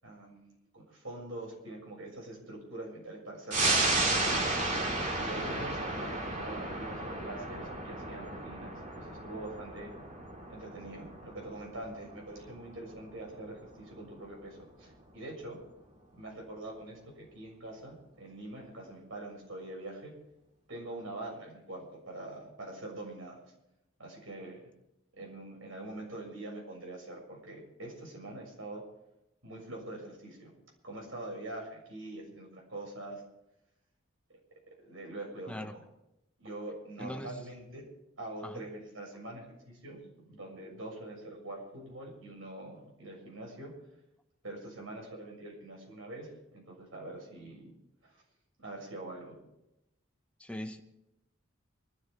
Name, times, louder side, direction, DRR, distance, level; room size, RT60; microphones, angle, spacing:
voice 1, 0.0-4.3 5.2-9.9 10.5-15.6 16.2-20.1 20.7-23.4 24.0-24.6 25.2-28.8 29.4-30.5 30.8-33.2 34.7-35.8 36.4-37.8 38.2-43.7 44.4-46.3 46.5-47.7 48.0-48.1 48.6-49.4, right 2 dB, 80° right, -1 dB, 6.8 m, -44 dB
sound 1, 3.5-14.5 14.9-15.0, right 2 dB, 40° right, 2.4 m, -34 dB
voice 2, 35.5-35.8 37.0-37.4 38.4-38.7 50.4-50.8, left 1 dB, 5° left, 5 dB, 1.0 m, -40 dB
25.5 x 13.0 x 3.6 m, 0.88 s
head